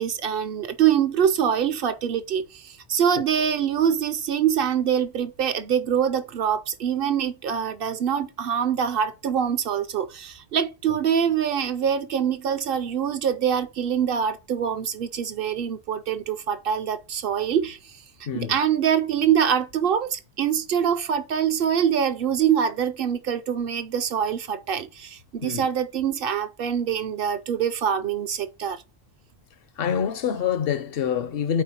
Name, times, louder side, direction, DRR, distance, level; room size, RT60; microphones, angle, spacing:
voice 1, 0.0-18.0 18.3-28.8, right 8 dB, 65° right, 0.7 m, -24 dB
voice 2, 18.3-18.6 25.4-25.6 29.8-31.6, left 8 dB, 65° left, 0.8 m, -26 dB
4.6 x 4.2 x 5.6 m
omnidirectional pair, 1.1 m